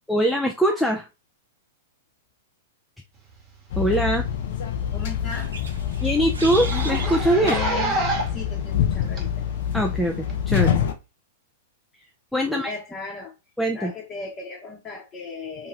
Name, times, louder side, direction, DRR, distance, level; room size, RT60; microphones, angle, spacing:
voice 1, 0.1-1.1 3.8-4.3 6.0-7.6 9.7-10.7 12.3-12.7 13.6-13.9, right 1 dB, ahead, 1 dB, 0.3 m, -22 dB
sound 1, 3.7-10.9, left 9 dB, 60° left, 0.5 m, -26 dB
Zipper (clothing), 3.8-4.0 4.4-4.5 4.8-4.9 5.3-5.4 5.6-5.8 6.5-8.4 9.2-9.3 10.3-10.4, right 2 dB, 25° right, 1.0 m, -28 dB
voice 2, 4.9-5.5 7.4-8.0 8.3-9.5 12.5-13.3 13.7-15.7, left 5 dB, 30° left, -2 dB, 0.9 m, -36 dB
sound 2, 5.3-7.2 7.5-7.7 8.2-8.4, right 2 dB, 90° right, 0.7 m, -34 dB
2.6 x 2.3 x 3.1 m, 0.27 s
hypercardioid pair, 115°, 0 cm